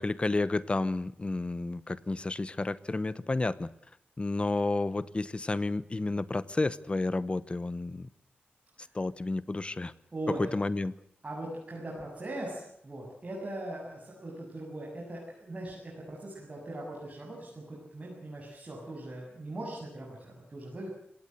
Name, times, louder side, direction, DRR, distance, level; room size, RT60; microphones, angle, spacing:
voice 1, 0.0-3.7 4.2-8.1 8.9-9.9 10.3-10.9, left 2 dB, 30° left, 16 dB, 1.0 m, -31 dB
voice 2, 10.1-10.5 11.2-20.9, right 1 dB, 35° right, -4 dB, 7.3 m, -40 dB
26.0 x 17.5 x 8.0 m, 0.68 s
wide cardioid pair, 115°, 4 cm